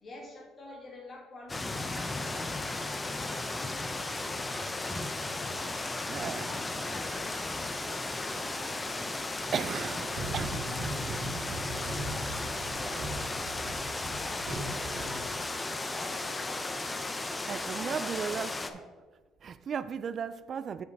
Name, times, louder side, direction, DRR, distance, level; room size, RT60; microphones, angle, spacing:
voice 1, 0.0-5.8 6.1-7.9 8.2-9.7 10.6-13.8 14.1-17.1 17.7-18.8, left 1 dB, 35° left, 2.4 m, -50 dB
sound 1, 1.5-18.7, left 2 dB, 15° left, 0.5 m, -35 dB
voice 2, 6.1-6.5 9.5-10.7 17.5-18.6 19.4-20.8, right 7 dB, 40° right, 0.3 m, -35 dB
sound 2, 10.1-15.6, right 1 dB, 65° right, 1.4 m, -39 dB
8.0 x 4.9 x 4.6 m
cardioid pair, 135°, 0 cm